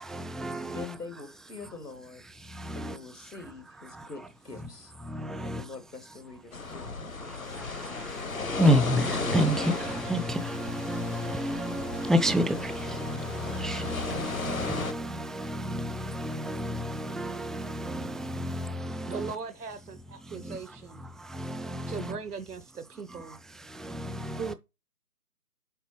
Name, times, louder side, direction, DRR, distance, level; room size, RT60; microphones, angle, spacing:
voice 1, 0.1-0.9 2.6-2.9 5.1-5.6 8.4-19.3 20.4-20.6 21.3-22.2 23.8-24.5, equal, ahead, 0.3 m, -30 dB
voice 2, 0.6-2.2 2.7-4.9 5.4-8.6, left 4 dB, 85° left, 1.9 m, -45 dB
sound 1, 6.5-14.9, left 4 dB, 60° left, 0.9 m, -35 dB
voice 3, 19.1-21.1 21.9-23.4 24.4-24.5, right 5 dB, 75° right, 0.8 m, -38 dB
7.9 x 3.9 x 4.6 m
figure-of-eight pair, 155°, 47 cm